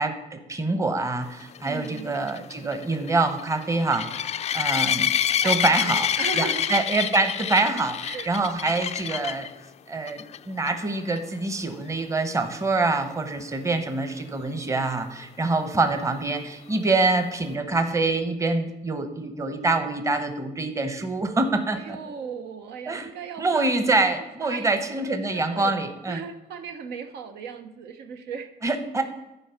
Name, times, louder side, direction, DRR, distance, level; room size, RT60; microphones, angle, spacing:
voice 1, 0.0-4.1 4.5-5.1 5.4-6.1 6.4-9.5 9.9-22.0 22.9-23.1 23.4-26.2 28.6-29.0, right 3 dB, 20° right, 7 dB, 1.0 m, -25 dB
sound 1, 1.5-9.5 10.1-10.4 10.7-10.8 11.2-11.3 14.8-14.9, left 9 dB, 40° left, 0.4 m, -27 dB
voice 2, 1.6-2.2 5.4-6.8 8.0-8.3 21.7-23.7 24.4-28.5, right 6 dB, 75° right, 6 dB, 0.9 m, -37 dB
11.0 x 4.7 x 5.7 m, 0.96 s
cardioid pair, 110°, 17 cm